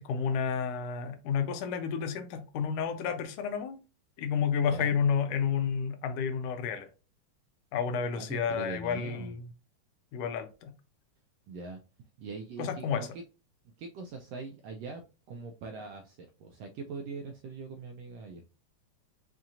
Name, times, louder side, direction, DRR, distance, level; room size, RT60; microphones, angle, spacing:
voice 1, 0.0-3.8 4.2-6.9 7.7-9.5 10.1-10.7 12.6-13.1, left 7 dB, 75° left, 1.6 m, -31 dB
voice 2, 8.1-9.3 11.5-11.8 12.2-13.1 13.6-18.4, right 4 dB, 80° right, 1.4 m, -42 dB
5.7 x 2.7 x 2.5 m
omnidirectional pair, 3.3 m